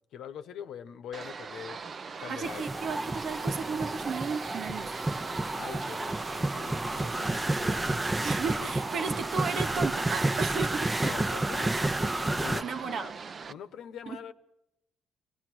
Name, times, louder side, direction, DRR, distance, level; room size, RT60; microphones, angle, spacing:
voice 1, 0.1-1.8 2.2-2.6 5.5-8.0 8.3-9.0 11.0-13.1 13.5-14.3, left 8 dB, 80° left, 10 dB, 1.1 m, -44 dB
sound 1, 1.1-13.5, right 5 dB, 45° right, 0.8 m, -41 dB
voice 2, 2.3-4.9 8.2-10.9 12.6-13.1 14.1-14.2, right 5 dB, 60° right, 7 dB, 1.2 m, -34 dB
sound 2, 2.4-12.6, right 2 dB, 20° right, 0.9 m, -30 dB
28.5 x 19.0 x 6.2 m, 0.87 s
cardioid pair, 90°, 0 cm